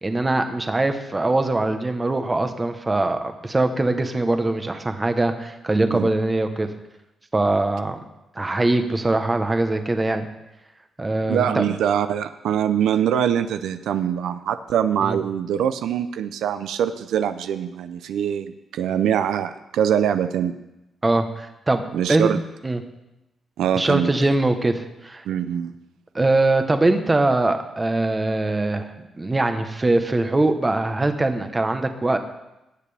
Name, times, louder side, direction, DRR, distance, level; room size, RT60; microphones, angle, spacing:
voice 1, 0.0-6.7 7.3-8.0 8.4-10.3 11.0-11.6 15.1-15.2 21.0-21.8 22.1-22.3 22.6-22.8 23.7-25.2 26.1-32.2, right 2 dB, 20° right, 7 dB, 0.9 m, -22 dB
voice 2, 11.3-20.6 21.9-22.4 23.6-24.1 25.3-25.7, right 9 dB, 90° right, 10 dB, 0.5 m, -23 dB
18.0 x 7.5 x 3.4 m, 0.94 s
cardioid pair, 110°, 0 cm